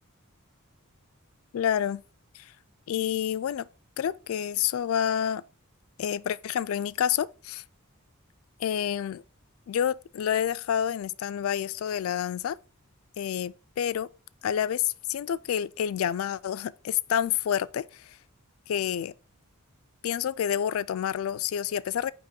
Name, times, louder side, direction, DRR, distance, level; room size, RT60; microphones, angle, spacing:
voice 1, 1.5-2.0 2.3-2.5 2.9-3.7 4.0-5.4 6.0-7.6 8.6-9.2 9.7-12.6 13.2-14.1 14.4-18.2 18.7-19.1 20.0-22.1, left 9 dB, 70° left, 0.3 m, -28 dB
8.8 x 3.0 x 4.2 m
head